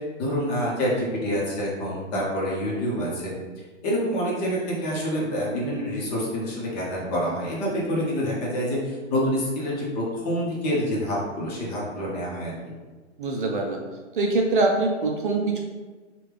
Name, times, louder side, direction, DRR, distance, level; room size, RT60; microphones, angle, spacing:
voice 1, 0.2-3.3 3.8-12.5, equal, 35° left, -4 dB, 1.0 m, -27 dB
voice 2, 13.2-13.8 14.1-15.6, right 2 dB, 45° right, 1 dB, 0.4 m, -23 dB
3.1 x 2.4 x 3.5 m, 1.3 s
hypercardioid pair, 135°, 37 cm